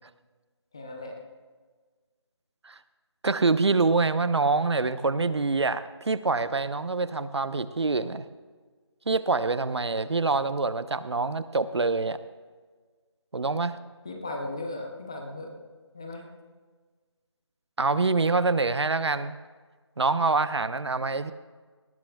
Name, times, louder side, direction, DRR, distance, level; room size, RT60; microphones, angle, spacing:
voice 1, 0.7-1.1 14.0-15.5 15.9-16.3, left 2 dB, 10° left, 2 dB, 0.7 m, -36 dB
voice 2, 3.2-8.2 9.1-12.2 13.3-13.8 17.8-19.4 20.0-21.3, right 3 dB, 65° right, 13 dB, 0.8 m, -25 dB
18.5 x 17.5 x 2.3 m, 1.5 s
figure-of-eight pair, 175°, 15 cm